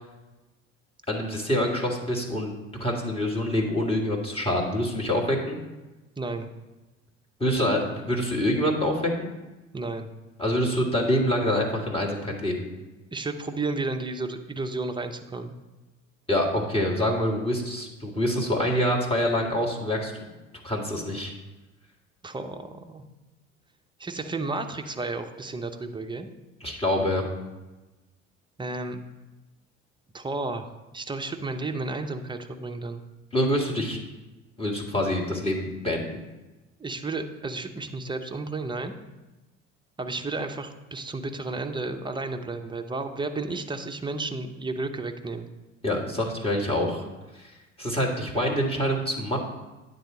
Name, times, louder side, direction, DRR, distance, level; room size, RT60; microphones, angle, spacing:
voice 1, 1.1-2.5 2.8-5.6 7.4-9.3 10.4-12.6 16.3-20.1 20.6-21.3 26.6-27.2 33.3-34.0 34.6-36.0 45.8-47.1 47.4-47.5 47.8-49.4, left 1 dB, 15° left, -1 dB, 1.9 m, -26 dB
voice 2, 6.2-6.5 9.7-10.1 13.1-15.5 22.2-23.0 24.0-26.3 28.6-29.0 30.1-33.0 36.8-38.9 40.0-45.5, right 3 dB, 10° right, 6 dB, 0.7 m, -32 dB
9.3 x 4.1 x 6.1 m, 1.1 s
figure-of-eight pair, 60°, 37 cm